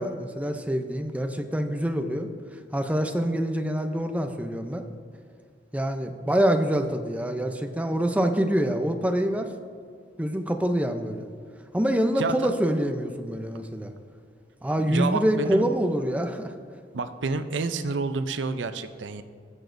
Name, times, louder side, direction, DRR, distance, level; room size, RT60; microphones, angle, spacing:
voice 1, 0.0-2.3 2.7-4.8 5.7-9.5 10.2-11.3 11.7-13.9 14.6-16.5, equal, 10° right, 6 dB, 0.5 m, -26 dB
voice 2, 12.2-12.5 14.9-15.6 16.9-19.2, right 4 dB, 90° right, 10 dB, 0.5 m, -29 dB
16.0 x 7.0 x 2.6 m, 2.1 s
head